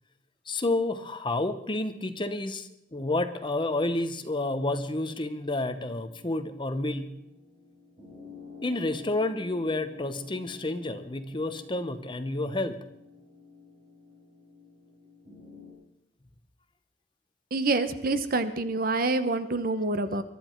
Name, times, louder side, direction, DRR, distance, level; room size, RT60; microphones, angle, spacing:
voice 1, 0.5-7.1 8.6-12.8, left 2 dB, 30° left, 9 dB, 1.0 m, -30 dB
sound 1, 4.2-15.7, left 4 dB, 35° right, 7.0 m, -51 dB
voice 2, 17.5-20.2, right 2 dB, 55° right, 11 dB, 1.0 m, -27 dB
22.5 x 12.0 x 4.6 m, 0.79 s
head